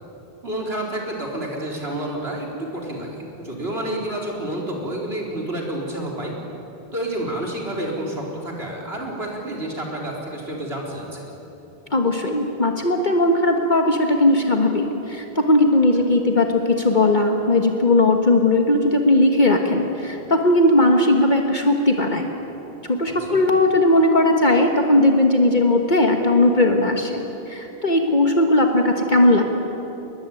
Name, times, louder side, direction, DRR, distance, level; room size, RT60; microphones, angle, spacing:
voice 1, 0.4-6.3 6.9-11.4 23.1-23.4, right 1 dB, 75° right, -1 dB, 4.6 m, -29 dB
voice 2, 11.9-22.3 22.9-29.4, left 2 dB, 45° left, 3 dB, 1.6 m, -18 dB
22.0 x 21.0 x 9.2 m, 3.0 s
omnidirectional pair, 1.1 m